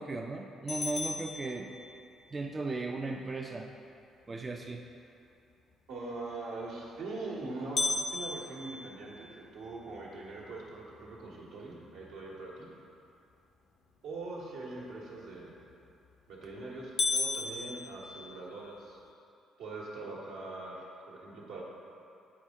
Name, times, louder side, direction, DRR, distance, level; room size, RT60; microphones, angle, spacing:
voice 1, 0.0-1.7 2.3-3.7 4.3-4.8, right 3 dB, 30° right, 1 dB, 0.5 m, -36 dB
sound 1, 0.7-2.3 7.8-9.9 10.4-10.5 11.0-11.1 11.8-12.1 15.7-16.1 16.5-16.6 17.0-18.7, left 3 dB, 50° left, 0.6 m, -35 dB
voice 2, 5.9-12.7 14.0-15.5 16.3-19.0 19.6-21.6, right 2 dB, 75° right, -5 dB, 1.3 m, -42 dB
8.5 x 4.3 x 3.6 m, 2.6 s
hypercardioid pair, 50°, 0 cm